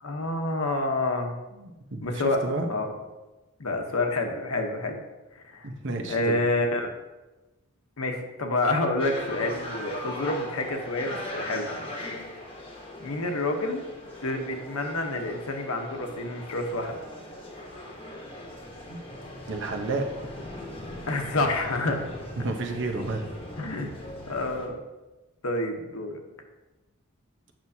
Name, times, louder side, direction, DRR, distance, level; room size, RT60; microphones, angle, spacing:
voice 1, 0.0-1.4 2.0-2.4 2.7-3.0 3.6-5.0 5.3-5.7 6.1-6.9 8.0-11.9 13.0-13.8 14.2-17.0 21.1-22.1 23.6-23.9 24.3-24.8 25.4-26.2, left 2 dB, 75° left, 4 dB, 1.0 m, -28 dB
voice 2, 1.6-2.7 5.6-6.4 18.9-19.0 19.5-20.1 22.4-23.2, right 3 dB, 55° right, 4 dB, 0.9 m, -31 dB
sound 1, 9.0-24.7, left 1 dB, 25° left, 1.1 m, -40 dB
8.8 x 6.1 x 2.8 m, 1.1 s
head